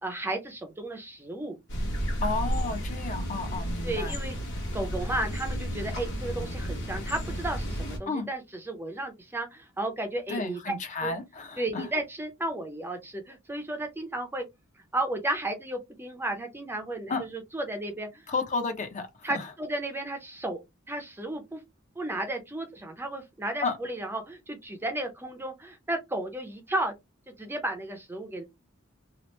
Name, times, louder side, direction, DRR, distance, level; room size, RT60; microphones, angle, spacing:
voice 1, 0.0-1.6 3.8-4.4 4.7-10.6 11.0-11.1 11.6-14.4 14.9-18.3 19.2-20.6 20.9-21.6 22.0-26.9 27.4-28.4, right 1 dB, 10° right, 0.5 m, -33 dB
sound 1, 1.7-8.0, equal, 60° left, 1.0 m, -32 dB
voice 2, 2.2-4.2 8.1-8.3 10.3-11.9 17.1-17.2 18.3-19.4 23.6-23.8, left 3 dB, 35° left, 0.6 m, -32 dB
2.9 x 2.0 x 3.1 m
head